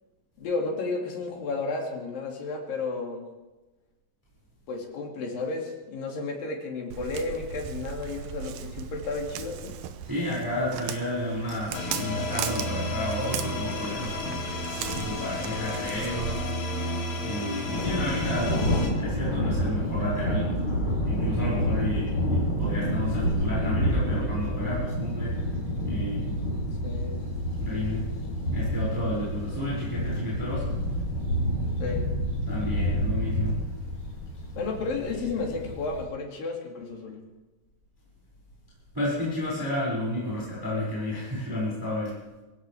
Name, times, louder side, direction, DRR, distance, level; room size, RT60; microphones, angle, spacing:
voice 1, 0.4-3.2 4.7-9.8 26.8-27.2 31.8-32.0 34.6-37.2, left 3 dB, 70° left, 0 dB, 4.1 m, -32 dB
Walk footsteps, 6.9-16.5, right 9 dB, 80° right, 2.5 m, -37 dB
voice 2, 10.0-14.4 14.9-16.5 17.2-18.6 18.9-20.5 21.0-25.3 25.8-26.4 27.5-28.1 28.5-30.8 32.5-33.6 38.9-42.2, left 1 dB, 5° right, -8 dB, 5.8 m, -31 dB
sound 1, 11.7-18.9, left 1 dB, 55° left, 3.0 m, -32 dB
Thunder, 17.6-36.0, equal, 40° left, 7.9 m, -28 dB
24.5 x 16.0 x 3.5 m, 1.1 s
omnidirectional pair, 4.3 m